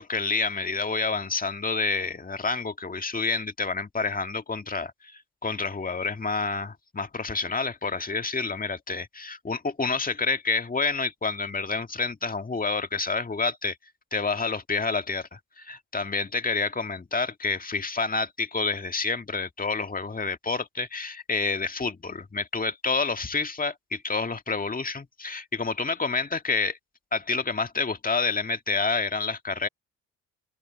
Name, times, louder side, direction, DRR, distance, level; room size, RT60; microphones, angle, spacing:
voice 1, 0.0-13.8 14.1-26.8 27.1-29.7, left 4 dB, 25° left, 2.0 m, -28 dB
open air
hypercardioid pair, 55°, 36 cm